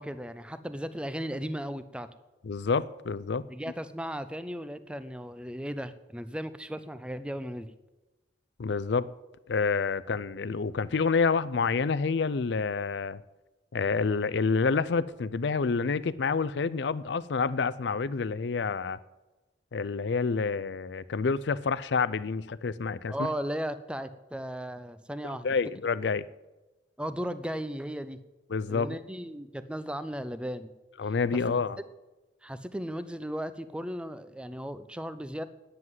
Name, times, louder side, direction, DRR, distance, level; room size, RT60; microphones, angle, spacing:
voice 1, 0.0-2.1 3.5-7.7 23.1-25.5 27.0-28.2 28.7-30.7 31.3-31.4 32.4-35.4, equal, 5° right, 0.5 m, -36 dB
voice 2, 2.4-3.4 8.6-9.1 9.5-13.2 13.7-19.0 19.7-23.3 25.4-26.2 28.5-28.9 31.0-31.8, left 4 dB, 65° left, 0.5 m, -28 dB
9.8 x 7.8 x 9.4 m
head